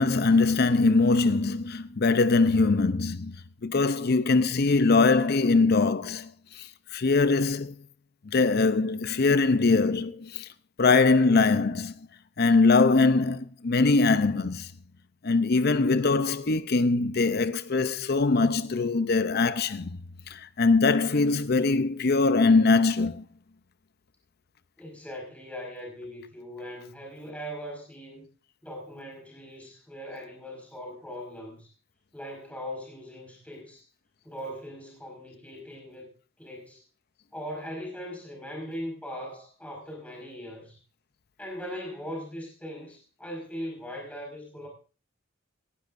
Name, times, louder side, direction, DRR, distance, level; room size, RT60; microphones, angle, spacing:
voice 1, 0.0-3.3 3.6-6.3 6.6-7.7 8.3-10.5 10.8-11.9 12.4-14.7 15.2-19.9 20.3-23.2, left 3 dB, 50° left, 0.6 m, -22 dB
voice 2, 24.8-28.3 28.6-31.7 32.1-33.9 34.2-36.1 36.4-36.8 37.3-40.8 41.4-44.7, equal, 5° left, 5.1 m, -40 dB
18.5 x 12.0 x 2.6 m
head